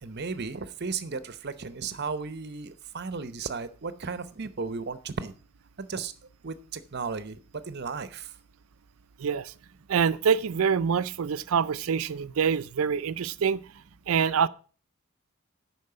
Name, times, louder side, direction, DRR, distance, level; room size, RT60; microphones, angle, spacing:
voice 1, 0.0-5.3 5.8-6.1 6.4-7.4 7.7-8.3, right 4 dB, 50° right, 0.8 m, -35 dB
voice 2, 9.2-9.5 9.9-13.6 14.1-14.5, right 7 dB, 85° right, 0.4 m, -25 dB
10.5 x 4.5 x 6.7 m
head